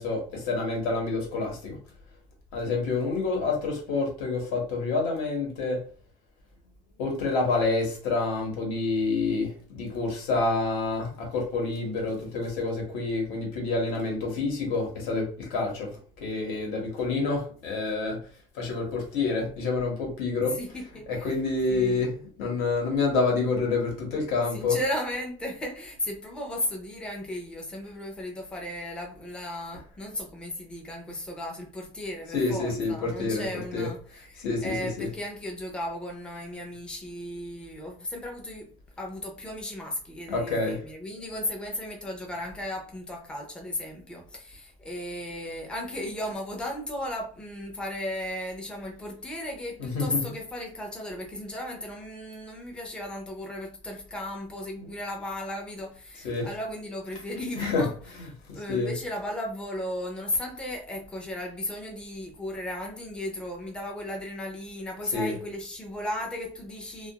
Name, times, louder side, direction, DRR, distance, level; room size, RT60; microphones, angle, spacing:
voice 1, 0.0-1.8 2.5-5.8 7.0-15.9 16.2-18.2 18.5-20.6 21.1-24.8 32.3-33.4 33.7-33.9 34.4-35.1 40.3-40.8 49.8-50.2 54.8-54.9 56.2-56.5 57.6-57.9 58.1-58.9 65.1-65.3, left 3 dB, 75° left, 1 dB, 1.0 m, -28 dB
voice 2, 20.5-21.3 21.7-22.1 24.5-57.9 58.5-67.1, left 1 dB, 5° left, 1 dB, 0.4 m, -35 dB
2.3 x 2.3 x 2.8 m, 0.43 s
cardioid pair, 175°, 14 cm